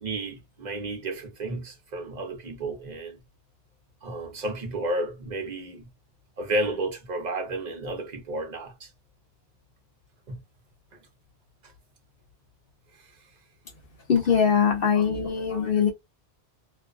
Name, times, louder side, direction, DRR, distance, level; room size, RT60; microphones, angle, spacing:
voice 1, 0.0-3.2 4.0-5.9 6.4-8.9 10.3-10.4 11.6-11.7 13.0-13.1, right 2 dB, 40° right, 0.9 m, -32 dB
voice 2, 14.1-15.9, left 7 dB, 60° left, 0.8 m, -22 dB
2.5 x 2.2 x 2.3 m
omnidirectional pair, 1.2 m